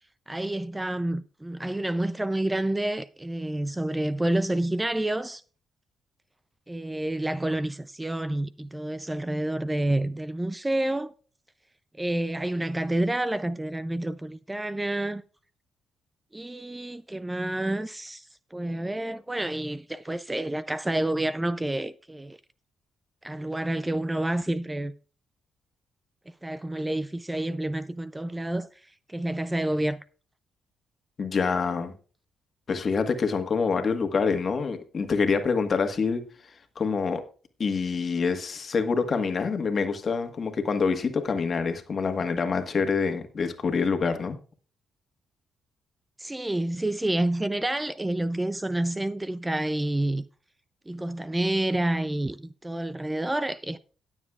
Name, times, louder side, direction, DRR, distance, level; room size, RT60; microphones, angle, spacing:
voice 1, 0.3-5.4 6.7-11.1 12.0-15.2 16.3-22.4 23.2-24.9 26.4-28.7 29.1-30.0 46.2-50.2 50.9-53.8, right 1 dB, 15° right, 0.4 m, -29 dB
voice 2, 31.2-31.9 32.7-36.2 36.7-37.2 37.6-44.4, left 5 dB, 50° left, 1.5 m, -26 dB
18.0 x 7.2 x 2.4 m
cardioid pair, 70°, 0 cm